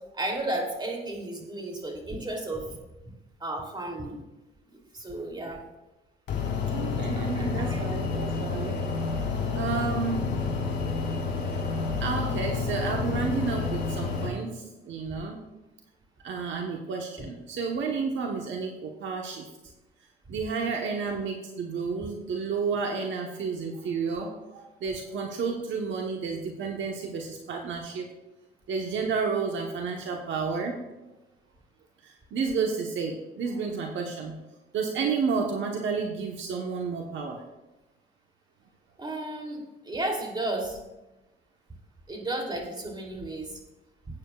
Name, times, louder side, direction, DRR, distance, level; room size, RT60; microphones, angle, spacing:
voice 1, 0.1-2.8 3.4-4.1 4.9-5.6 7.1-7.8 39.0-40.8 42.1-43.5, right 1 dB, 20° right, 1 dB, 3.1 m, -33 dB
sound 1, 6.3-14.3, left 4 dB, 65° left, 3.0 m, -29 dB
voice 2, 6.7-8.8 9.5-10.3 11.5-11.6 12.0-15.4 16.2-19.5 20.3-28.1 28.7-30.8 32.0-34.4 34.7-37.4, right 5 dB, 70° right, 1 dB, 1.2 m, -31 dB
18.5 x 8.8 x 2.4 m, 1.0 s
cardioid pair, 90°, 20 cm